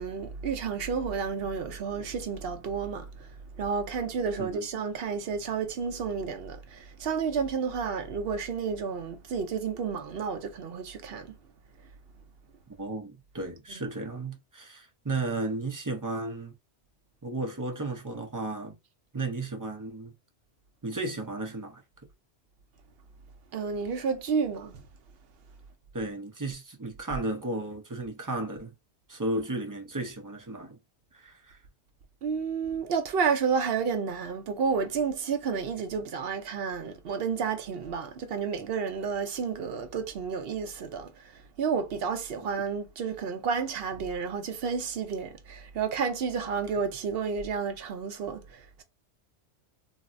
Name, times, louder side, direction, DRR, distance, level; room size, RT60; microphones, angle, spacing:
voice 1, 0.0-3.3 3.6-11.4 13.7-13.8 23.5-24.8 32.2-48.8, right 6 dB, 65° right, 0.8 m, -31 dB
voice 2, 12.8-16.5 17.2-18.8 19.1-20.1 20.8-21.8 25.9-28.7 29.1-30.8 31.1-31.6, right 2 dB, 25° right, 0.4 m, -34 dB
3.9 x 2.0 x 2.5 m
omnidirectional pair, 1.1 m